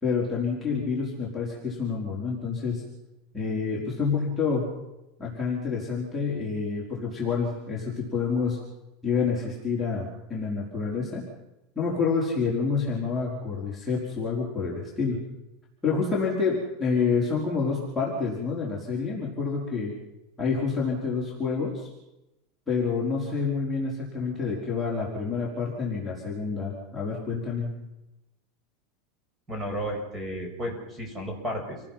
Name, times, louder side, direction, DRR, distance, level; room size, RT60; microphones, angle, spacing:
voice 1, 0.0-2.8 3.3-4.6 5.2-8.6 9.0-11.2 11.7-15.2 15.8-19.9 20.4-21.9 22.7-27.7, left 5 dB, 5° left, -5 dB, 4.8 m, -28 dB
voice 2, 29.5-31.8, equal, 15° right, 2 dB, 6.8 m, -33 dB
29.0 x 19.0 x 5.9 m, 0.93 s
supercardioid pair, 155°, 0 cm